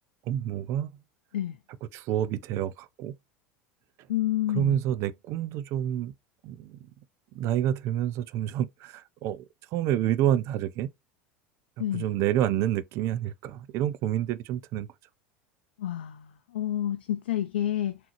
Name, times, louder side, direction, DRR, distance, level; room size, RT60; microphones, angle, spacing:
voice 1, 0.3-0.9 1.9-3.1 4.5-6.1 6.4-6.9 7.3-9.5 9.7-10.9 11.8-14.9, right 11 dB, 55° right, 0.4 m, -28 dB
voice 2, 4.1-4.8 11.8-12.1 15.8-16.3 16.5-18.0, left 12 dB, 80° left, 0.4 m, -29 dB
3.7 x 2.9 x 2.9 m
hypercardioid pair, 85°, 6 cm